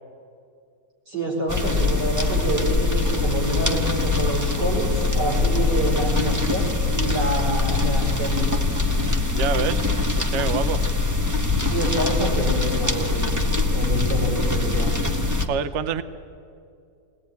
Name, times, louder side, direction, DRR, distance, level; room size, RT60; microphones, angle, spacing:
voice 1, 1.1-8.5 11.5-14.9 15.3-15.5, right 1 dB, 70° right, -2 dB, 5.5 m, -27 dB
sound 1, 1.5-15.5, left 3 dB, 15° right, 0.9 m, -23 dB
voice 2, 9.3-9.8 10.2-10.8 15.4-16.0, right 7 dB, 55° right, 12 dB, 0.9 m, -26 dB
21.5 x 18.0 x 9.3 m, 2.5 s
omnidirectional pair, 1.9 m